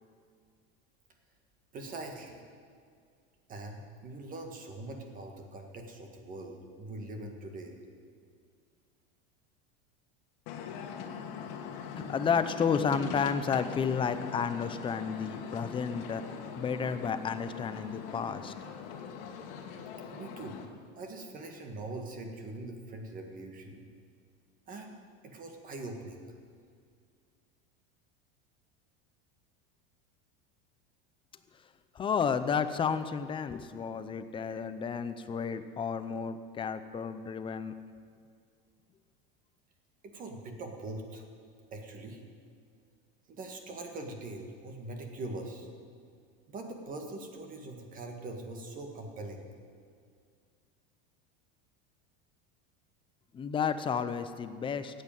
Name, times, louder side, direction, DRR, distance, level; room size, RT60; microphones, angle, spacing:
voice 1, 1.7-2.4 3.5-7.8 20.1-20.6 21.0-23.8 24.7-25.0 25.2-26.3 40.0-41.2 41.7-42.2 43.3-45.7 46.5-49.5, right 2 dB, 30° right, 4 dB, 1.8 m, -42 dB
sound 1, 10.5-20.7, left 6 dB, 60° left, 1.7 m, -42 dB
voice 2, 12.0-18.5 31.9-37.7 53.3-55.0, left 6 dB, 15° left, 11 dB, 0.6 m, -32 dB
15.0 x 8.5 x 9.0 m, 2.2 s
supercardioid pair, 150°, 29 cm